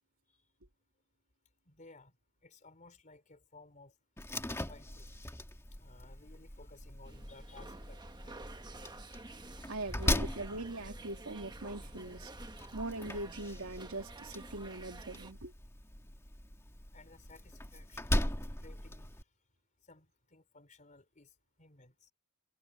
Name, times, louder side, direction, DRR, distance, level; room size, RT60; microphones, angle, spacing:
voice 1, 1.7-2.1 2.4-3.9 4.6-5.2 5.7-8.4 12.5-12.6 16.9-19.2 19.8-21.3 21.6-22.1, left 3 dB, 40° left, 4.0 m, -58 dB
Slam, 4.2-19.2, left 1 dB, 15° left, 2.0 m, -39 dB
sound 1, 7.0-15.3, right 2 dB, 20° right, 1.1 m, -51 dB
voice 2, 9.7-12.3 12.7-15.5, right 2 dB, 85° right, 2.2 m, -41 dB
head